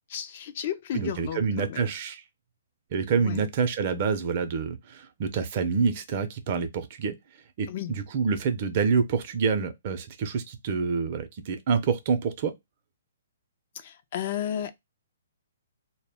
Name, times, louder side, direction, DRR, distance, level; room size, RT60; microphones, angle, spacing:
voice 1, 0.1-1.9 3.2-3.5 7.7-8.0 13.7-14.7, left 10 dB, 50° left, 0.4 m, -33 dB
voice 2, 0.9-2.2 2.9-7.1 7.6-12.5, right 5 dB, 45° right, 0.5 m, -27 dB
2.1 x 2.1 x 3.4 m
hypercardioid pair, 145°, 0 cm